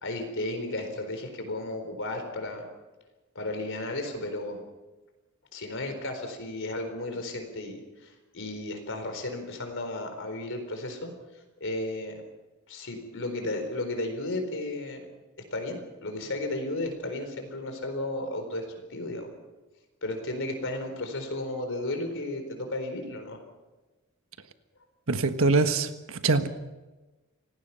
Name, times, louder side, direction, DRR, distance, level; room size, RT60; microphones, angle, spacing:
voice 1, 0.0-2.7 3.3-4.6 5.5-11.1 11.6-12.1 12.7-15.0 15.5-18.6 18.9-19.3 20.0-23.4, left 2 dB, 60° left, 4.2 m, -34 dB
voice 2, 25.1-26.5, right 3 dB, 65° right, 1.4 m, -24 dB
27.5 x 18.5 x 5.7 m
head